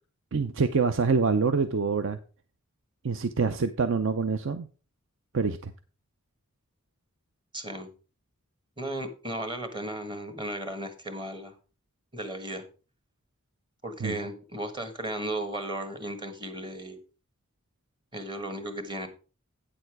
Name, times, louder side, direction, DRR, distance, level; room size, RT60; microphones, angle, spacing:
voice 1, 0.3-2.2 3.0-4.7 5.3-5.7 14.0-14.2, right 5 dB, 60° right, 9 dB, 0.6 m, -26 dB
voice 2, 7.5-7.9 8.8-11.5 12.1-12.6 13.8-17.0 18.1-19.1, right 1 dB, 20° right, 8 dB, 1.4 m, -35 dB
9.0 x 6.9 x 4.7 m, 0.35 s
head